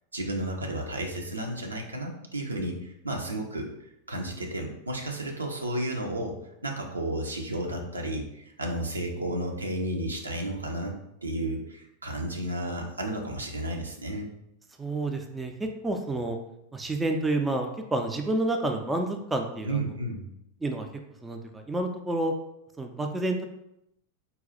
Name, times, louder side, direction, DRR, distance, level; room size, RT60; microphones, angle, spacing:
voice 1, 0.1-3.7 4.1-6.4 6.6-10.9 11.2-14.3 19.6-20.3, right 1 dB, 80° right, 1 dB, 0.6 m, -32 dB
voice 2, 14.8-16.4 16.7-19.8 20.6-20.9 21.2-22.3 22.8-23.4, right 2 dB, 10° right, 4 dB, 0.4 m, -29 dB
4.0 x 2.3 x 3.9 m, 0.81 s
figure-of-eight pair, 90°, 0 cm